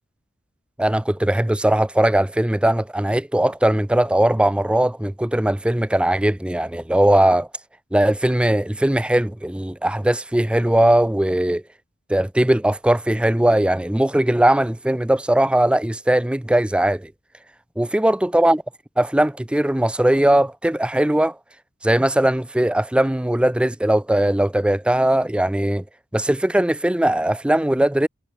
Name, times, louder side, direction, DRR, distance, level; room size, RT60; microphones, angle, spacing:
voice 1, 0.8-7.5 7.9-11.6 12.1-17.1 17.8-18.6 19.0-21.4 21.8-25.8 26.1-28.1, right 1 dB, 5° right, 0.4 m, -19 dB
head